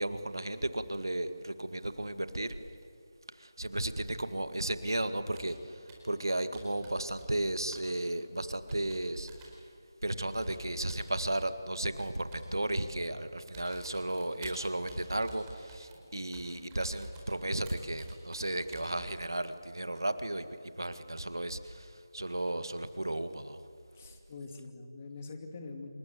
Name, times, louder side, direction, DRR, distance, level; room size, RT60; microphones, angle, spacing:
voice 1, 0.0-2.6 3.4-9.3 10.0-20.5 20.8-23.6, right 1 dB, 80° right, 11 dB, 1.9 m, -34 dB
Computer keyboard, 5.3-5.6 5.9-6.2 6.5-7.5 7.7-7.9 8.7-9.6 10.4-11.4 12.0-12.5 13.0-13.2 13.5-19.2, right 4 dB, 15° right, 4.4 m, -51 dB
voice 2, 23.9-25.9, left 3 dB, 30° left, 5 dB, 2.6 m, -44 dB
27.5 x 21.5 x 7.8 m, 2.4 s
figure-of-eight pair, 160°, 2 cm